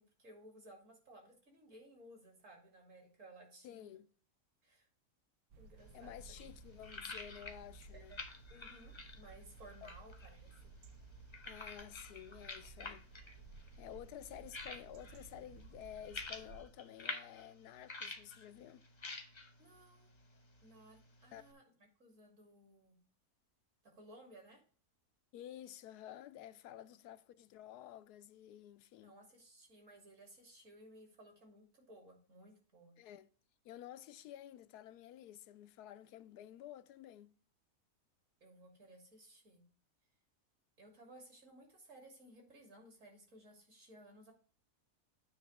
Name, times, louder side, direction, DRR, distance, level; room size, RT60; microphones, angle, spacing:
voice 1, 0.0-3.9 4.6-4.9 5.6-6.4 6.7-6.8 7.9-8.2 8.5-10.7 19.6-20.1 20.6-21.6 22.0-23.0 23.8-24.6 29.0-33.0 38.4-39.6 40.8-44.3, right 1 dB, 55° right, 3.1 m, -59 dB
voice 2, 3.6-4.1 5.9-8.2 9.8-9.9 11.5-13.1 13.8-18.8 21.3-21.4 25.3-29.2 33.0-33.3 33.6-37.3, left 11 dB, 85° left, 1.1 m, -52 dB
sound 1, 5.5-16.6, right 3 dB, 70° right, 1.2 m, -56 dB
sound 2, 5.8-21.5, left 3 dB, 25° left, 0.6 m, -51 dB
9.3 x 3.2 x 6.3 m
omnidirectional pair, 1.6 m